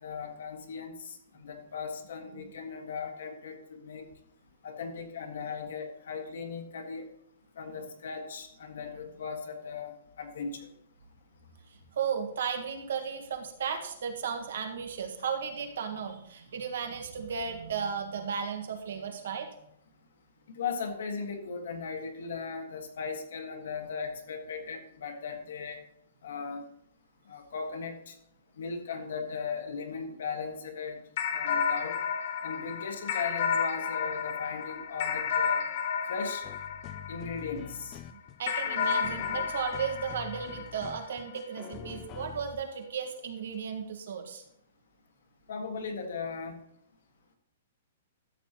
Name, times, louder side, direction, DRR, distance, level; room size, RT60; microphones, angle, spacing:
voice 1, 0.0-4.0 4.6-7.1 7.6-10.7 20.5-25.8 26.2-26.6 27.3-28.1 28.6-31.0 31.3-32.0 32.4-35.6 36.1-36.4 37.1-38.0 45.5-46.6, left 5 dB, 60° left, 4 dB, 1.6 m, -37 dB
voice 2, 11.7-19.5 38.1-44.4, right 7 dB, 65° right, 5 dB, 1.5 m, -35 dB
sound 1, 31.2-37.8 38.5-41.2, left 7 dB, 40° left, 1.1 m, -32 dB
sound 2, 36.4-42.8 43.5-43.6, left 10 dB, 20° left, 0.4 m, -46 dB
13.0 x 7.3 x 3.0 m, 0.76 s
hypercardioid pair, 180°, 0 cm